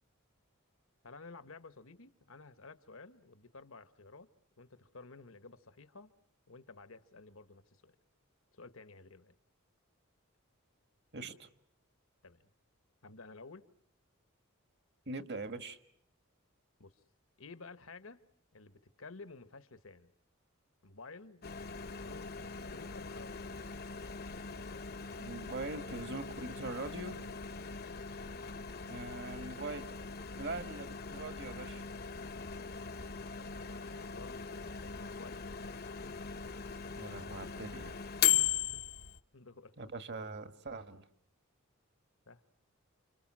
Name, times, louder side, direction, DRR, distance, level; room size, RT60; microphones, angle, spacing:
voice 1, 1.0-4.3 4.6-6.1 6.5-7.9 8.5-9.3 12.2-12.4 13.0-13.7 16.8-16.9 17.4-18.2 18.5-20.1 20.8-23.4 33.5-34.4 34.8-35.4 35.8-36.2 38.3-38.8 39.3-39.7 42.3-42.4, left 3 dB, 70° left, 12 dB, 1.4 m, -53 dB
voice 2, 11.1-11.5 15.1-15.8 25.2-27.2 28.9-29.9 30.4-31.8 36.9-37.9 39.8-41.1, right 3 dB, 50° right, 9 dB, 1.7 m, -42 dB
Microwave oven, 21.4-39.2, left 8 dB, 45° left, 1.0 m, -39 dB
29.5 x 26.5 x 6.2 m, 0.67 s
head